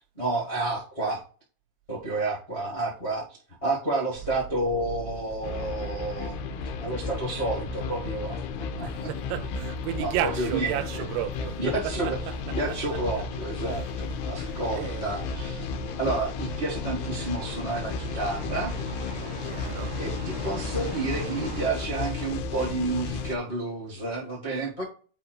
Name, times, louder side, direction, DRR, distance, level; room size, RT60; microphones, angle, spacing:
voice 1, 0.1-1.2 1.9-8.4 8.8-9.1 10.0-11.0 11.6-12.2 12.5-15.7 16.0-18.7 20.0-24.8, right 2 dB, 70° left, 0.6 m, -30 dB
sound 1, 4.1-23.1, right 4 dB, 70° right, 2.0 m, -44 dB
sound 2, 5.4-23.4, left 5 dB, 90° left, 2.4 m, -34 dB
voice 2, 8.8-12.8 14.4-15.2 19.4-20.0, right 13 dB, 85° right, 3.3 m, -34 dB
sound 3, 11.3-21.7, right 1 dB, 50° right, 1.7 m, -43 dB
8.0 x 3.6 x 4.8 m
omnidirectional pair, 5.8 m